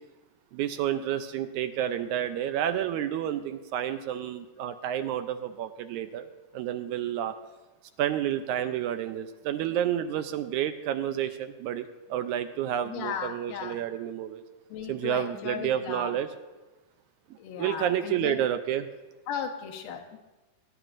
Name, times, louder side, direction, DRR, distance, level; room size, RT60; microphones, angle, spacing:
voice 1, 0.5-6.3 6.5-7.3 8.0-14.4 14.9-16.3 17.3-18.9, right 10 dB, 80° right, 9 dB, 1.8 m, -30 dB
voice 2, 12.8-13.8 14.7-16.2 17.4-18.5 19.3-20.2, left 7 dB, 80° left, 2 dB, 2.7 m, -36 dB
20.5 x 11.0 x 2.5 m, 1.2 s
omnidirectional pair, 3.8 m